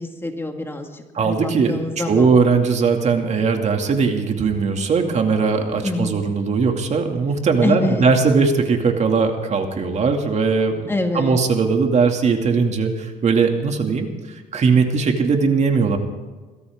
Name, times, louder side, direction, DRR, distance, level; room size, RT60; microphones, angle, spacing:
voice 1, 0.0-2.4 5.8-6.1 7.6-8.1 10.9-11.4, left 2 dB, 15° left, 4 dB, 2.0 m, -26 dB
voice 2, 1.1-16.0, right 5 dB, 45° right, 4 dB, 2.5 m, -19 dB
22.5 x 16.0 x 3.7 m, 1.3 s
cardioid pair, 110°, 17 cm